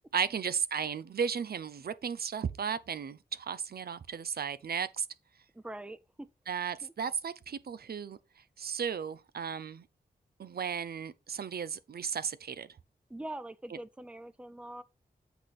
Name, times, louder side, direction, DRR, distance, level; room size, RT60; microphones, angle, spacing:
voice 1, 0.1-5.1 6.5-8.2 8.6-9.8 10.4-12.7 13.7-13.8, right 7 dB, 70° right, 0.5 m, -35 dB
voice 2, 5.5-6.3 6.8-6.9 13.1-14.8, right 1 dB, 5° right, 0.5 m, -43 dB
8.1 x 4.2 x 4.8 m
wide cardioid pair, 110°, 17 cm